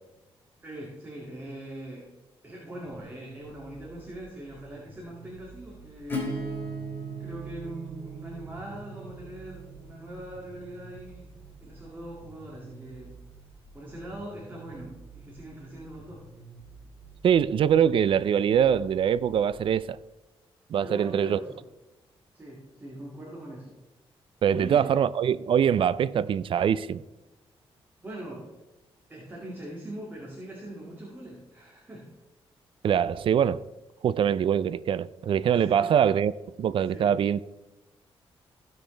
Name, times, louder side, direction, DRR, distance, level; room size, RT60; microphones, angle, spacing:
voice 1, 0.6-2.1 2.4-6.4 7.2-11.3 11.6-13.1 13.7-16.2 20.8-21.6 22.3-23.7 24.5-24.9 28.0-28.5 29.1-32.1 35.5-35.9 36.8-37.1, right 1 dB, 20° right, 2.3 m, -41 dB
sound 1, 2.8-19.7, right 3 dB, 40° right, 3.7 m, -50 dB
Acoustic guitar / Strum, 6.1-11.6, right 1 dB, 20° left, 3.1 m, -38 dB
voice 2, 17.2-20.0 20.7-21.4 24.4-27.0 32.8-33.7 34.0-36.3 36.6-37.4, right 8 dB, 60° right, 0.4 m, -23 dB
16.0 x 6.4 x 3.3 m
cardioid pair, 115°, 10 cm